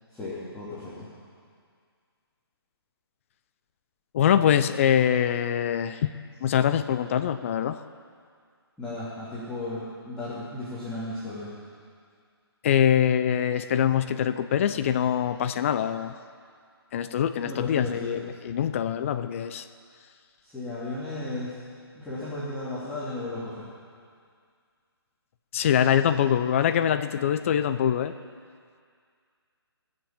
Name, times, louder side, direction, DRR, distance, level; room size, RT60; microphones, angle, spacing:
voice 1, 0.1-1.1 8.8-11.5 17.4-18.2 20.4-21.5 21.9-23.7, left 2 dB, 5° left, -13 dB, 3.0 m, -35 dB
voice 2, 4.1-6.1 6.4-7.8 12.6-16.2 16.9-19.7 25.5-28.1, left 9 dB, 30° left, 10 dB, 0.5 m, -24 dB
20.0 x 7.5 x 7.6 m, 2.1 s
figure-of-eight pair, 140°, 14 cm